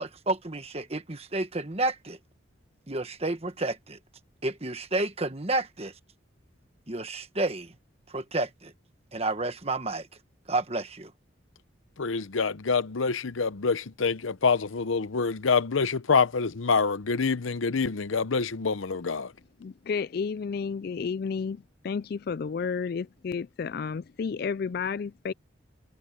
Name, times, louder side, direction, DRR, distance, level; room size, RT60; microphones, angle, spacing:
voice 1, 0.0-2.2 2.9-4.0 4.4-5.9 6.9-7.7 8.1-8.7 9.1-10.1 10.5-11.1, right 2 dB, 30° right, 1.4 m, -30 dB
voice 2, 12.0-19.3, left 5 dB, 90° left, 0.8 m, -26 dB
voice 3, 19.6-25.3, left 5 dB, 50° left, 0.3 m, -31 dB
head